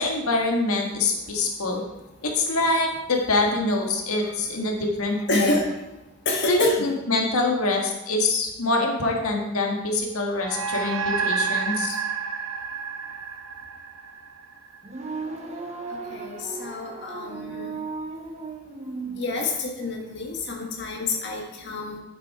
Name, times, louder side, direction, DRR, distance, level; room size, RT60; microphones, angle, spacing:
voice 1, 0.0-1.8 2.2-5.5 6.5-12.0, left 2 dB, 85° left, 1 dB, 1.7 m, -24 dB
voice 2, 5.3-5.7 6.2-6.9 16.1-17.8 19.2-22.0, left 2 dB, 55° left, 0 dB, 1.5 m, -28 dB
sound 1, 10.4-15.1, right 5 dB, 65° right, 0.8 m, -29 dB
sound 2, 14.8-19.2, right 4 dB, 30° right, 0.9 m, -35 dB
9.0 x 7.5 x 4.8 m, 0.99 s
head